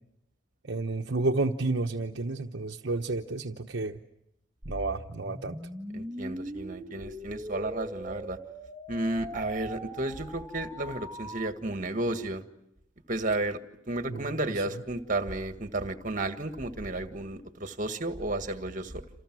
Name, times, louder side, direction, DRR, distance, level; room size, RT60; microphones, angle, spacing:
voice 1, 0.7-4.0 4.7-5.6 14.1-14.5, right 2 dB, 60° right, 4 dB, 1.0 m, -31 dB
sound 1, 4.6-11.5, equal, 5° right, 2.0 m, -41 dB
voice 2, 5.9-8.4 8.9-12.4 13.1-13.6 13.9-19.0, right 2 dB, 40° right, 9 dB, 1.8 m, -32 dB
28.5 x 28.5 x 6.2 m, 0.82 s
head